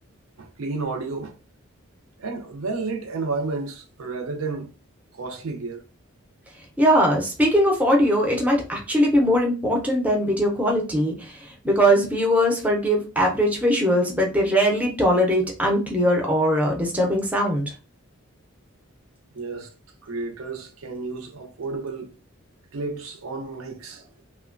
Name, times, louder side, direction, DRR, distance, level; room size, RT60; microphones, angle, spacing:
voice 1, 0.4-1.3 2.2-4.7 5.2-5.8 19.3-19.7 20.0-22.1 22.7-24.0, right 3 dB, 80° right, 0.5 m, -31 dB
voice 2, 6.8-17.6, equal, 5° right, 0.4 m, -21 dB
3.0 x 2.1 x 2.4 m
head